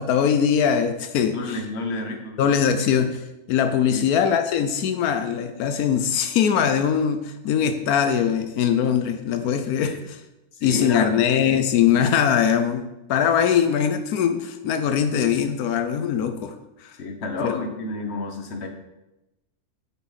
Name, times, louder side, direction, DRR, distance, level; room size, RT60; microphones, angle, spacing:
voice 1, 0.0-1.4 2.4-10.2 10.6-12.8 13.1-16.5 16.8-16.9 17.4-17.6, left 8 dB, 85° left, 8 dB, 1.1 m, -21 dB
voice 2, 1.3-2.4 3.8-4.1 9.8-10.0 10.5-11.1 16.9-18.7, left 2 dB, 50° left, 4 dB, 1.3 m, -30 dB
9.4 x 6.0 x 4.1 m, 0.95 s
omnidirectional pair, 1.5 m